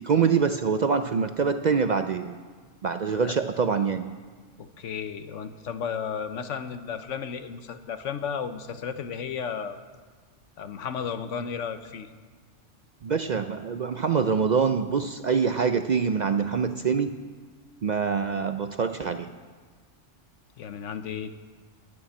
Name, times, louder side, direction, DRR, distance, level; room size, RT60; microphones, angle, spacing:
voice 1, 0.0-2.4 2.8-4.1 13.0-17.1 17.8-19.3, right 6 dB, 55° right, 9 dB, 0.5 m, -25 dB
voice 2, 4.6-9.8 10.6-12.1 20.6-21.3, left 7 dB, 85° left, 10 dB, 1.2 m, -33 dB
11.5 x 8.6 x 9.7 m, 1.5 s
omnidirectional pair, 1.2 m